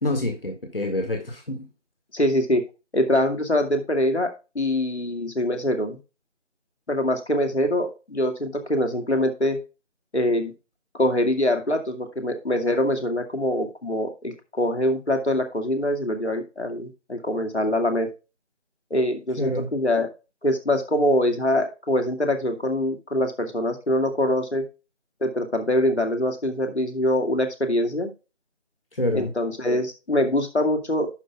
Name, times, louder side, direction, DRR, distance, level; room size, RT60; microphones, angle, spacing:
voice 1, 0.0-1.6 19.4-19.7 28.9-29.3, left 1 dB, 50° left, 1.9 m, -27 dB
voice 2, 2.1-2.6 2.9-6.0 6.9-9.6 10.1-10.5 10.9-18.1 18.9-20.1 20.4-24.6 25.2-28.1 29.1-31.1, left 1 dB, 65° left, 2.4 m, -24 dB
11.5 x 5.4 x 3.5 m
figure-of-eight pair, 175°, 36 cm